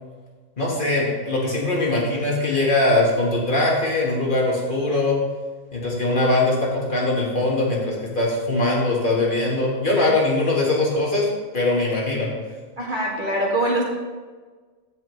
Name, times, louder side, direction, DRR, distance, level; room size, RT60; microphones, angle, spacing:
voice 1, 0.6-5.2 5.7-11.3 11.5-12.3, left 2 dB, 40° left, -4 dB, 1.8 m, -21 dB
voice 2, 12.8-13.8, right 1 dB, 40° right, -3 dB, 1.4 m, -23 dB
15.0 x 5.3 x 3.2 m, 1.4 s
omnidirectional pair, 1.4 m